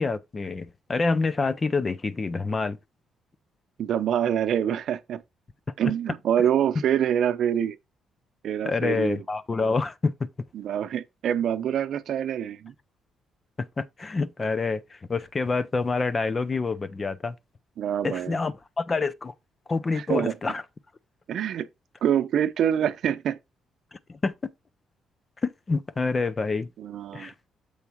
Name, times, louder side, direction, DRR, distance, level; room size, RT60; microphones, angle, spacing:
voice 1, 0.0-2.8 8.6-10.1 13.6-17.3 18.0-19.3 19.7-20.6 23.9-24.3 25.4-26.7 27.1-27.3, left 4 dB, 30° left, 0.7 m, -27 dB
voice 2, 3.8-5.2 5.8-7.8 8.4-9.2 10.5-12.7 17.8-18.4 19.9-20.3 21.3-21.7 22.0-23.4 26.8-27.3, right 9 dB, 70° right, 0.7 m, -25 dB
7.2 x 4.6 x 4.5 m
cardioid pair, 90°, 0 cm